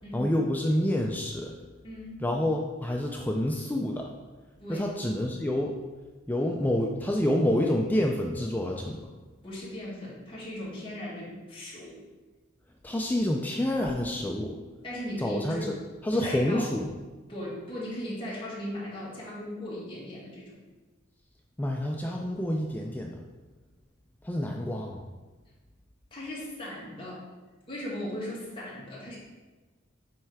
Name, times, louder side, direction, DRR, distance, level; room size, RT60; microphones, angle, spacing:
voice 1, 0.1-1.5 2.2-4.1 4.7-5.8 6.3-9.1 12.8-14.6 15.2-15.8 16.0-16.9 21.6-23.2 24.2-25.0, left 1 dB, 10° left, 1 dB, 0.4 m, -28 dB
voice 2, 1.8-2.2 4.6-4.9 9.4-12.0 14.8-15.7 16.1-16.6 17.3-20.6 26.1-27.2 27.7-29.2, left 1 dB, 25° left, -7 dB, 2.0 m, -37 dB
7.7 x 3.3 x 4.7 m, 1.3 s
head